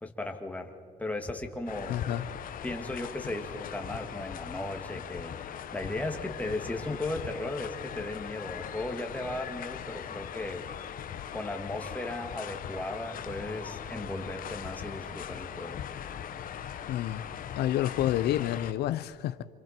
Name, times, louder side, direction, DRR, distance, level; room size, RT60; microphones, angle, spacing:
voice 1, 0.0-0.7 1.0-2.0 2.6-10.6 11.3-15.8, left 2 dB, 10° left, 3 dB, 2.2 m, -36 dB
sound 1, 1.7-18.7, left 9 dB, 55° left, 1.2 m, -40 dB
voice 2, 1.9-2.3 16.9-17.2 17.6-19.4, left 12 dB, 75° left, 13 dB, 0.6 m, -29 dB
28.5 x 27.0 x 4.5 m, 2.4 s
cardioid pair, 110°, 17 cm